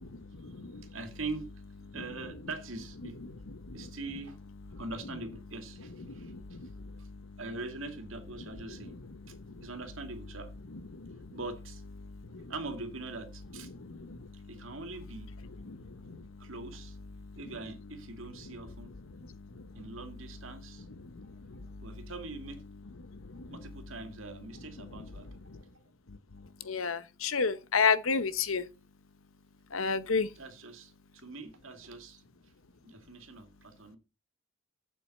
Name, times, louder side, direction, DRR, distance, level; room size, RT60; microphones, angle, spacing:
voice 1, 0.2-0.9 1.9-2.3 3.2-4.0 6.0-7.4 8.7-9.7 10.7-11.4 12.0-12.5 13.7-14.7 15.6-16.5 17.2-17.6 18.4-18.6 19.0-20.0 21.0-22.1 23.0-23.6 24.8-25.1 25.5-25.6 26.1-28.7 29.7-30.3, left 5 dB, 80° left, 1.0 m, -35 dB
voice 2, 0.9-1.4 1.8-3.2 3.7-4.4 4.7-6.3 7.0-7.1 7.4-8.9 9.6-10.5 11.3-11.8 12.5-13.7 14.5-15.3 16.4-17.0 17.4-18.9 19.8-20.9 21.8-22.6 23.5-25.3 30.4-32.2 32.8-34.0, right 3 dB, 75° right, 2.4 m, -42 dB
8.2 x 7.7 x 5.4 m
head